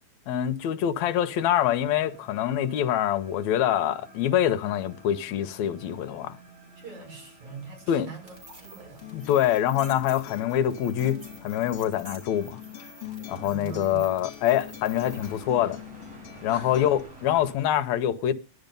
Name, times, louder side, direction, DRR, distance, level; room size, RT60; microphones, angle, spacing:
voice 1, 0.3-6.4 7.9-8.1 9.1-12.6 13.3-15.8 16.4-18.3, left 11 dB, 70° left, 2.0 m, -25 dB
sound 1, 1.2-17.5, right 2 dB, 50° right, 8.5 m, -51 dB
voice 2, 6.8-9.0 13.3-14.1 16.5-16.9, right 4 dB, 70° right, 7.4 m, -42 dB
sound 2, 8.3-15.5, right 1 dB, 15° right, 3.2 m, -49 dB
Acoustic guitar, 9.0-17.0, left 12 dB, 55° left, 2.4 m, -44 dB
15.0 x 10.5 x 5.3 m
omnidirectional pair, 3.5 m